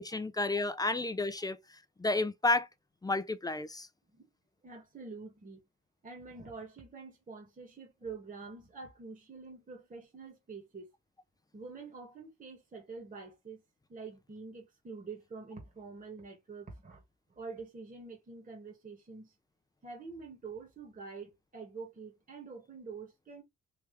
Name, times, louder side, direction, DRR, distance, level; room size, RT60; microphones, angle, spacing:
voice 1, 0.0-1.6 2.0-2.7 3.0-3.9, left 2 dB, 15° left, 0.5 m, -31 dB
voice 2, 4.6-5.6 6.0-10.9 11.5-13.6 13.9-17.0 17.3-19.3 19.8-23.4, right 4 dB, 25° right, 1.5 m, -46 dB
3.5 x 3.1 x 3.3 m
cardioid pair, 90°, 30 cm